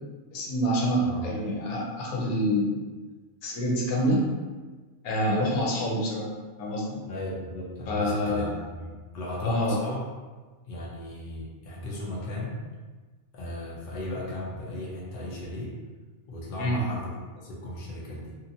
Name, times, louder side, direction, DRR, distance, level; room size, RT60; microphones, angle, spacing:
voice 1, 0.3-2.8 3.4-4.2 5.0-6.3 6.6-7.0 7.9-8.6 9.4-9.8 16.6-16.8, equal, 90° left, -2 dB, 1.1 m, -27 dB
voice 2, 7.0-10.0 10.7-12.6 13.3-15.7 16.3-18.4, left 1 dB, 50° left, -4 dB, 0.7 m, -36 dB
2.8 x 2.5 x 2.6 m, 1.3 s
omnidirectional pair, 1.5 m